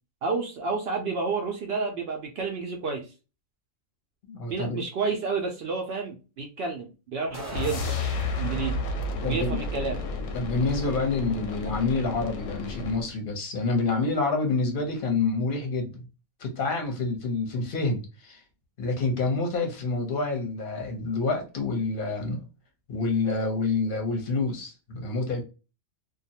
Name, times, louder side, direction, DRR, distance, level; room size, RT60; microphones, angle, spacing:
voice 1, 0.2-3.1 4.5-7.9 8.4-8.9 9.2-10.0, right 4 dB, 65° right, 0.6 m, -30 dB
voice 2, 4.3-4.8 8.4-8.6 9.2-9.6 10.3-16.0 16.4-18.4 18.8-22.4 22.9-25.4, left 3 dB, 45° left, 0.8 m, -28 dB
sound 1, 7.3-8.4, right 1 dB, 25° right, 0.4 m, -39 dB
sound 2, 7.5-13.1, left 2 dB, 70° left, 0.9 m, -32 dB
2.5 x 2.2 x 2.7 m
omnidirectional pair, 1.5 m